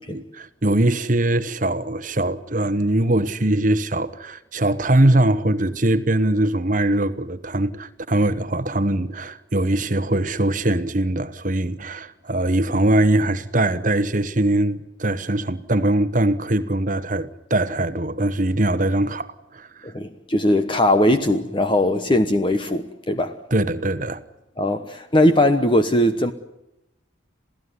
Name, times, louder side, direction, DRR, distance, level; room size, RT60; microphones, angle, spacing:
voice 1, 0.1-19.9 23.5-24.2, right 1 dB, 40° right, 1.1 m, -21 dB
voice 2, 19.8-23.4 24.6-26.3, left 1 dB, 25° left, 1.1 m, -19 dB
28.0 x 16.5 x 9.7 m
head